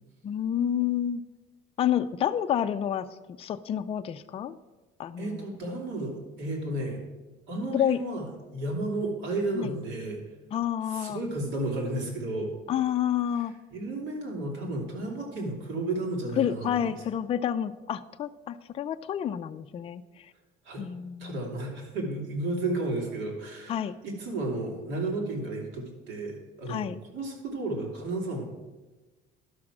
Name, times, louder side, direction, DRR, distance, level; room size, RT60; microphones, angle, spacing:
voice 1, 0.2-1.2 1.8-3.1 3.4-4.6 5.0-5.5 7.7-8.0 9.5-9.8 10.5-11.2 12.7-13.5 16.4-20.3 20.8-21.4 23.7-23.9 26.7-27.0, left 10 dB, 30° left, 9 dB, 0.4 m, -29 dB
voice 2, 5.2-7.0 7.5-8.2 8.5-10.2 10.9-12.5 13.7-16.9 20.6-20.8 21.2-28.4, right 2 dB, 70° right, 0 dB, 2.9 m, -33 dB
11.5 x 6.2 x 6.0 m, 1.2 s
cardioid pair, 145°, 20 cm